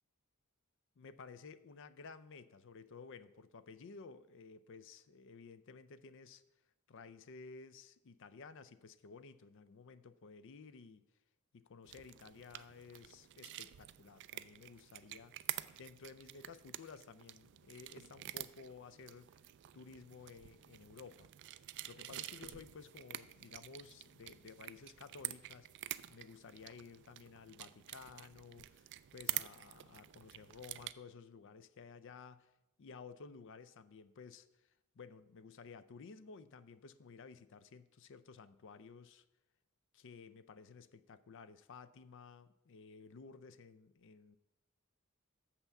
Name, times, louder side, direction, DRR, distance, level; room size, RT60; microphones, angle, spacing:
voice 1, 1.0-6.4 6.9-11.1 11.5-15.3 15.8-19.4 19.7-21.3 21.9-25.7 26.1-32.5 32.8-34.5 35.0-39.2 39.9-44.4, left 5 dB, 60° left, 14 dB, 0.5 m, -54 dB
sound 1, 11.8-30.9, right 15 dB, 55° right, 0.3 m, -48 dB
6.7 x 5.7 x 6.9 m, 0.94 s
head